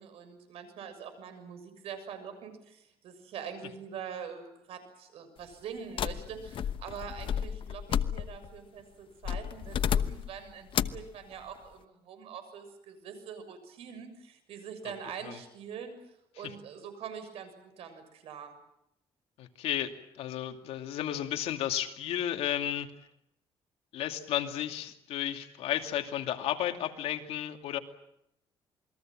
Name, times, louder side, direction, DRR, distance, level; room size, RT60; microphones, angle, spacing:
voice 1, 0.0-15.9 16.3-18.5, right 7 dB, 75° right, 9 dB, 6.7 m, -44 dB
sound 1, 6.0-8.6 9.2-10.4 10.7-11.1, left 9 dB, 55° left, 1.0 m, -32 dB
voice 2, 19.4-22.9 23.9-27.8, left 11 dB, 80° left, 5 dB, 2.6 m, -33 dB
28.0 x 22.0 x 7.6 m, 0.81 s
cardioid pair, 115°, 10 cm